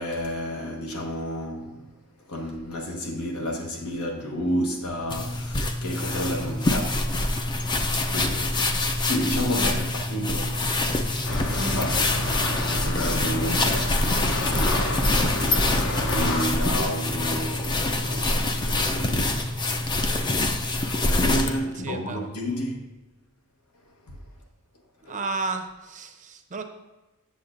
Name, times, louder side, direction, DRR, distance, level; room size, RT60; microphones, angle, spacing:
voice 1, 0.0-1.9 2.2-7.2 7.9-10.8 11.4-19.7 20.6-22.9 24.1-24.2 25.0-25.2, equal, 85° left, 1.2 m, -31 dB
sound 1, 5.1-21.6, left 2 dB, 20° left, 0.4 m, -25 dB
sound 2, 11.3-16.4, left 1 dB, 60° left, 0.9 m, -30 dB
voice 2, 21.8-22.6 25.1-26.6, right 3 dB, 35° right, 0.6 m, -33 dB
8.3 x 6.8 x 2.5 m
head